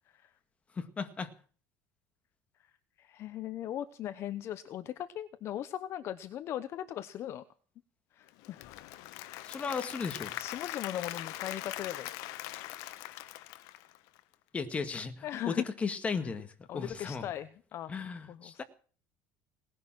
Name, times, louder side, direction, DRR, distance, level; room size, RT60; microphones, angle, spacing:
voice 1, 0.8-1.3 9.4-10.3 14.5-17.3 17.9-18.6, left 5 dB, 20° left, 8 dB, 1.9 m, -36 dB
voice 2, 3.0-7.4 8.1-8.6 10.4-12.1 15.2-15.6 16.2-16.3 16.7-17.9 18.3-18.6, left 11 dB, 45° left, 12 dB, 0.9 m, -38 dB
Applause / Crowd, 8.3-14.3, left 16 dB, 70° left, 1.2 m, -42 dB
19.0 x 11.0 x 6.1 m, 0.42 s
cardioid pair, 140°, 6 cm